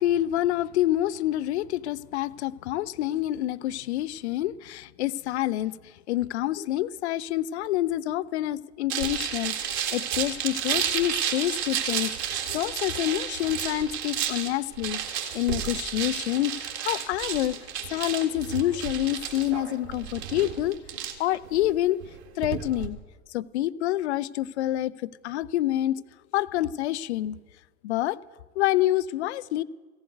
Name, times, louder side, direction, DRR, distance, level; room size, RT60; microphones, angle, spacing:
voice 1, 0.0-17.6 17.9-20.8 21.2-22.0 22.4-23.0 23.3-26.0 26.3-27.4 27.8-28.2 28.6-29.6, left 14 dB, 75° left, 18 dB, 0.5 m, -27 dB
sound 1, 8.9-22.9, right 9 dB, 60° right, 1.9 m, -32 dB
15.0 x 8.0 x 9.2 m, 1.3 s
hypercardioid pair, 85°, 33 cm